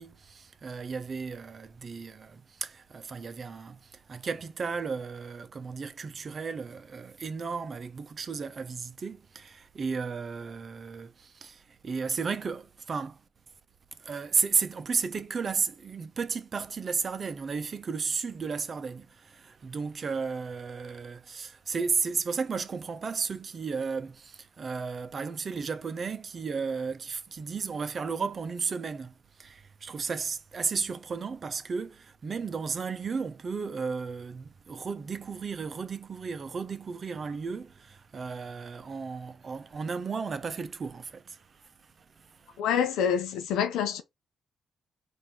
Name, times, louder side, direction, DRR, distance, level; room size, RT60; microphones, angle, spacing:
voice 1, 0.0-13.2 13.9-42.6, right 5 dB, 40° right, 0.6 m, -34 dB
voice 2, 42.6-44.0, left 8 dB, 90° left, 0.5 m, -27 dB
4.5 x 2.6 x 3.7 m
cardioid pair, 90°, 0 cm